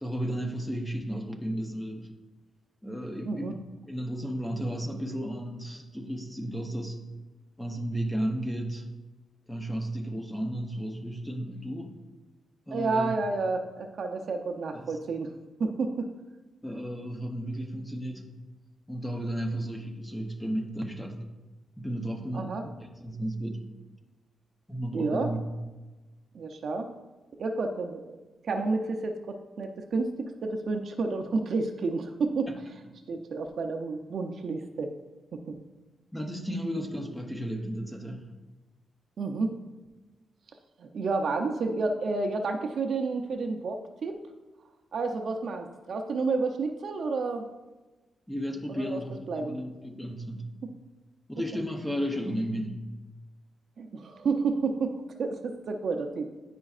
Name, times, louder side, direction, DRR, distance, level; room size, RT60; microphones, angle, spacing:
voice 1, 0.0-2.1 2.8-7.0 7.6-8.9 9.5-12.0 12.7-13.2 14.7-14.9 16.6-18.3 18.9-21.2 21.8-23.7 24.7-25.4 32.5-32.6 36.1-38.3 48.3-50.5 51.3-52.8, equal, 5° left, 3 dB, 0.6 m, -34 dB
voice 2, 12.7-15.3 15.6-16.1 22.3-22.6 24.9-25.3 26.3-26.9 27.4-28.2 28.4-32.5 33.1-34.9 35.3-35.6 39.2-39.5 40.8-44.3 44.9-47.5 48.7-49.0 49.3-49.6 53.8-56.3, right 3 dB, 50° right, 4 dB, 0.5 m, -30 dB
9.7 x 5.1 x 2.4 m, 1.2 s
wide cardioid pair, 175°, 0 cm